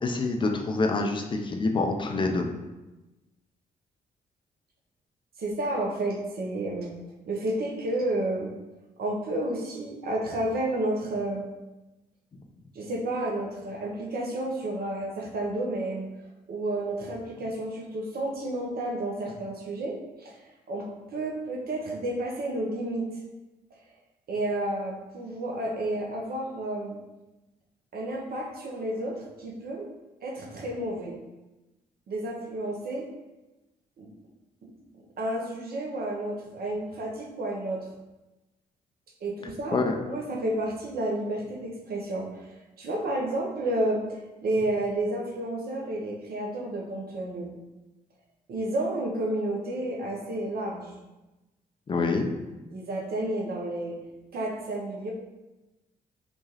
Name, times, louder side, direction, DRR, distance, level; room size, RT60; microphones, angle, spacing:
voice 1, 0.0-2.5 39.4-40.0 51.9-52.3, left 3 dB, 25° left, 3 dB, 0.4 m, -26 dB
voice 2, 5.4-7.0 7.2-8.5 9.0-11.5 12.7-16.1 16.5-20.4 20.7-23.1 24.3-27.0 27.9-29.9 30.2-31.2 32.1-33.1 34.0-34.1 34.6-34.7 35.2-37.9 39.2-42.5 42.8-44.1 44.4-47.5 48.5-50.9 52.7-54.0 54.3-55.1, right 1 dB, 45° right, -1 dB, 0.7 m, -31 dB
3.0 x 2.2 x 2.9 m, 1.1 s
figure-of-eight pair, 40°, 21 cm